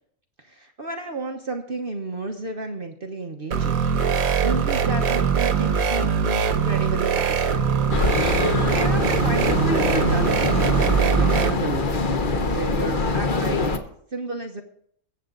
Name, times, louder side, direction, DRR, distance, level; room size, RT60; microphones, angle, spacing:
voice 1, 0.4-3.9 4.4-7.8 8.4-12.0 12.5-13.8 14.1-14.6, right 2 dB, 45° right, 4 dB, 1.2 m, -32 dB
sound 1, 3.5-11.5, right 7 dB, 85° right, 1.4 m, -22 dB
sound 2, 7.9-13.8, left 3 dB, 40° left, 1.1 m, -24 dB
23.0 x 8.0 x 3.9 m, 0.65 s
omnidirectional pair, 1.5 m